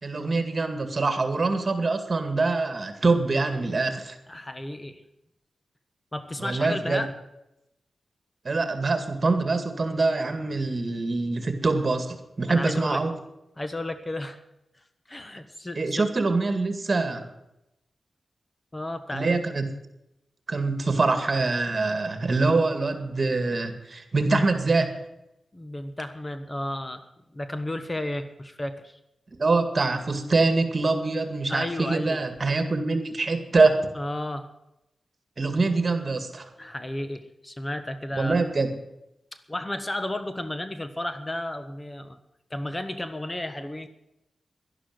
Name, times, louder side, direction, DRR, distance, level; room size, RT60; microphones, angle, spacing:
voice 1, 0.0-4.2 6.4-7.0 8.4-13.1 15.7-17.3 19.1-19.6 20.5-24.9 29.4-33.8 35.4-36.5 38.2-38.7, right 3 dB, 45° right, 8 dB, 2.1 m, -24 dB
voice 2, 4.3-5.0 6.1-7.1 12.5-13.0 13.6-14.4 15.1-16.1 18.7-19.4 25.5-27.0 27.3-29.0 31.5-32.2 34.0-34.5 36.6-38.4 39.5-42.2 42.5-43.9, left 1 dB, 25° left, 10 dB, 1.2 m, -33 dB
11.5 x 11.5 x 7.9 m, 0.87 s
cardioid pair, 60°, 0 cm